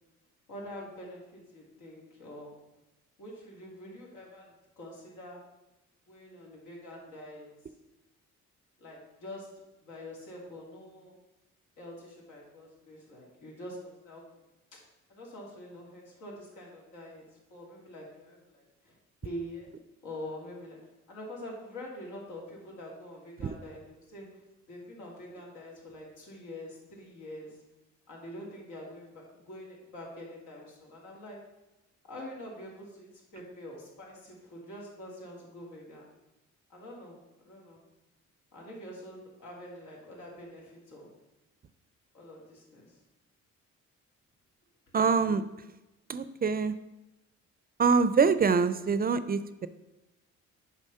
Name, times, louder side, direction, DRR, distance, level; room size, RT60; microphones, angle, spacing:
voice 1, 0.5-2.5 3.2-5.4 6.1-7.5 8.8-9.5 9.8-11.2 11.8-14.2 15.1-17.2 17.5-19.0 19.2-19.7 20.0-20.8 21.1-24.4 24.7-27.6 28.1-31.4 32.1-36.0 36.7-37.8 38.5-41.1 42.1-43.0, left 1 dB, 90° left, -3 dB, 2.6 m, -45 dB
voice 2, 44.9-45.4 46.1-46.7 47.8-49.7, right 5 dB, 30° right, 13 dB, 0.4 m, -25 dB
7.2 x 4.9 x 5.5 m, 1.0 s
cardioid pair, 90°, 30 cm